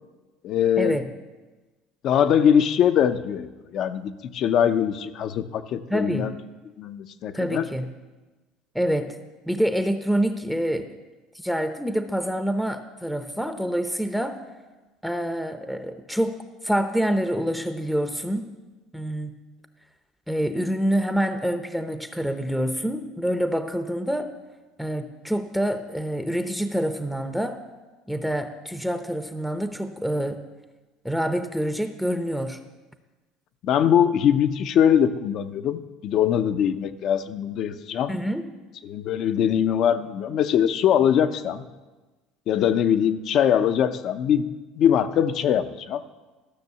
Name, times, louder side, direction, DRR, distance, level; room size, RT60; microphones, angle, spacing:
voice 1, 0.4-1.0 2.0-6.3 6.8-7.7 33.6-38.1 38.8-41.6 42.5-44.5 44.8-46.0, left 9 dB, 55° left, 10 dB, 0.7 m, -22 dB
voice 2, 5.9-6.3 7.3-7.9 8.7-9.2 9.5-10.9 11.4-14.4 15.0-18.5 18.9-19.3 20.3-24.3 24.8-27.6 28.1-30.4 31.0-32.6 38.1-38.5, equal, ahead, 8 dB, 0.7 m, -26 dB
13.5 x 6.2 x 6.8 m, 1.2 s
supercardioid pair, 105°, 0 cm